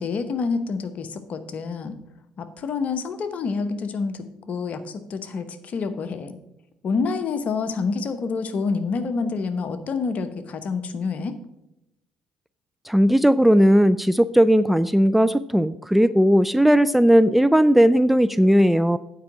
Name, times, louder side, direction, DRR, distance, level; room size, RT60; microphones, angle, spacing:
voice 1, 0.0-2.0 2.4-6.4 6.8-11.4, left 4 dB, 50° left, 10 dB, 0.9 m, -27 dB
voice 2, 12.9-19.0, equal, 5° right, 13 dB, 0.3 m, -17 dB
8.6 x 4.9 x 7.1 m, 0.89 s
hypercardioid pair, 50°, 3 cm